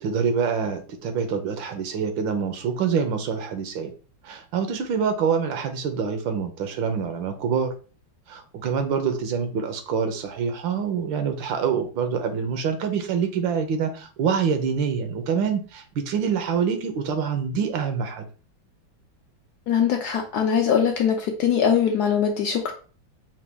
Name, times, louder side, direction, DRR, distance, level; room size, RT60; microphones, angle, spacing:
voice 1, 0.0-3.9 4.2-7.7 8.3-18.2, right 6 dB, 75° right, 7 dB, 1.5 m, -26 dB
voice 2, 19.7-22.7, left 7 dB, 70° left, 3 dB, 1.0 m, -22 dB
5.9 x 2.2 x 3.3 m, 0.38 s
omnidirectional pair, 2.1 m